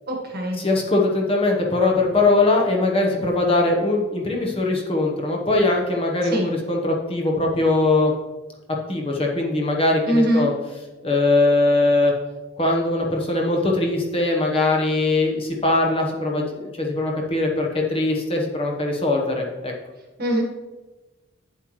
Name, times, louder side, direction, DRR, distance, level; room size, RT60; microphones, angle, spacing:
voice 1, 0.1-0.6 6.3-6.5 10.1-10.5 20.2-20.4, right 1 dB, 45° right, 0 dB, 1.4 m, -21 dB
voice 2, 0.6-8.1 8.9-10.5 11.0-12.1 12.6-19.7, left 2 dB, 25° left, -1 dB, 1.0 m, -21 dB
9.2 x 7.6 x 3.1 m, 1.2 s
head